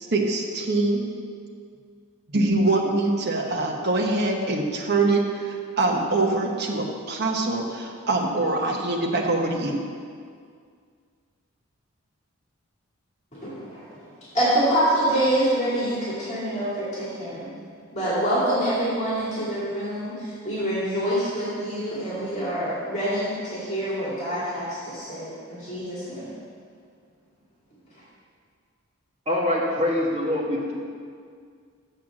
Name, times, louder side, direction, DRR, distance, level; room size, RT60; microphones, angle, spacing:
voice 1, 0.1-1.1 2.3-9.9, right 2 dB, 50° right, 1 dB, 1.0 m, -24 dB
voice 2, 13.3-14.0 14.3-17.5 17.9-26.3, right 1 dB, 30° left, -9 dB, 2.4 m, -26 dB
voice 3, 29.3-30.7, left 1 dB, 30° right, -5 dB, 1.7 m, -24 dB
6.7 x 6.2 x 7.4 m, 2.1 s
head